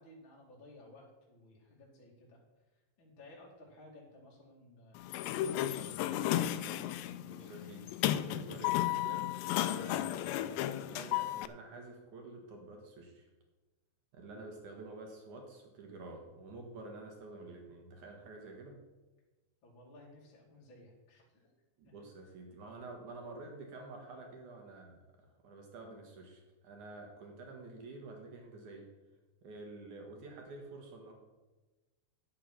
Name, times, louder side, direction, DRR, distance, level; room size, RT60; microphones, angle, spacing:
voice 1, 0.0-2.4 3.0-5.0 5.3-6.2 19.6-21.5 21.8-21.9 24.1-24.3, left 1 dB, 35° left, -4 dB, 2.2 m, -57 dB
Sliding door, 5.0-11.5, left 13 dB, 85° left, 2.5 m, -34 dB
voice 2, 7.2-10.5 10.8-13.3 14.1-18.8 21.8-25.0 25.4-28.9 29.4-31.1, right 2 dB, 60° right, 2 dB, 2.2 m, -49 dB
10.5 x 8.7 x 6.0 m, 1.2 s
omnidirectional pair, 5.4 m